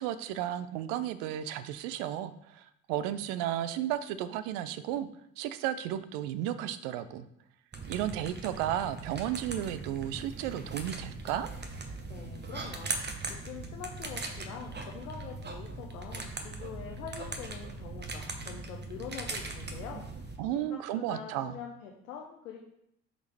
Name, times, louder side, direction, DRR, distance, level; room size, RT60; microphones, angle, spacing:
voice 1, 0.0-5.1 5.4-7.2 7.9-11.5 20.4-21.6, right 11 dB, 65° right, 13 dB, 0.6 m, -33 dB
sound 1, 7.7-20.4, right 3 dB, 25° right, 1.0 m, -40 dB
voice 2, 12.1-13.1 13.4-22.6, left 7 dB, 80° left, 0 dB, 0.8 m, -44 dB
6.9 x 4.1 x 3.4 m, 0.76 s
figure-of-eight pair, 50°, 42 cm